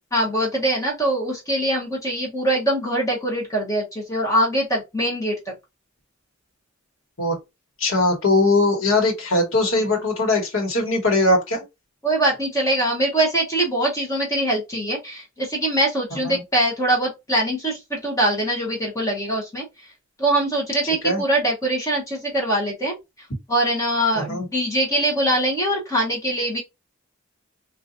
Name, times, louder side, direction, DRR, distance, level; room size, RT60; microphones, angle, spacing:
voice 1, 0.1-5.5 12.0-19.9 20.2-26.6, right 1 dB, 15° left, 0.9 m, -23 dB
voice 2, 7.8-11.6 16.2-16.4 21.0-21.2 24.1-24.5, left 2 dB, 75° left, 1.3 m, -20 dB
3.9 x 2.5 x 2.5 m
head